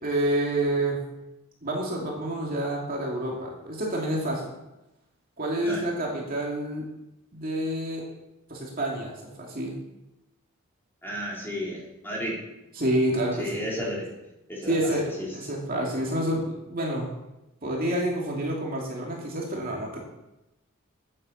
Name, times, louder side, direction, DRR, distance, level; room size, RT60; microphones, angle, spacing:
voice 1, 0.0-1.0 1.6-4.5 5.4-6.8 7.3-8.1 8.5-9.7 12.8-13.6 14.7-17.1 17.6-20.0, right 1 dB, 40° right, -2 dB, 2.5 m, -28 dB
voice 2, 11.0-12.4 13.4-14.1 14.5-14.9 15.2-15.3, equal, 10° left, -4 dB, 3.5 m, -33 dB
9.4 x 9.3 x 7.1 m, 0.94 s
head